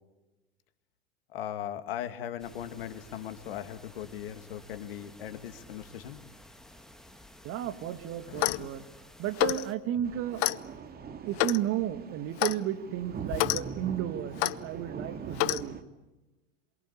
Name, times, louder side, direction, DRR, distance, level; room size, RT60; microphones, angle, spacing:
voice 1, 1.3-6.2, left 10 dB, 65° left, 10 dB, 2.3 m, -38 dB
sound 1, 2.4-9.7, left 1 dB, ahead, 2.5 m, -53 dB
voice 2, 7.4-8.8 9.2-10.5 11.2-15.8, right 11 dB, 45° right, 9 dB, 2.4 m, -33 dB
Clock, 8.3-8.7 9.4-9.7 10.4-10.6 11.4-11.6 12.4-12.6 13.3-13.6 14.4-14.6 15.4-15.6, left 20 dB, 50° left, 0.9 m, -28 dB
sound 2, 10.0-15.8, right 5 dB, 30° right, 2.5 m, -42 dB
27.5 x 23.5 x 8.6 m, 1.0 s
figure-of-eight pair, 80°, 31 cm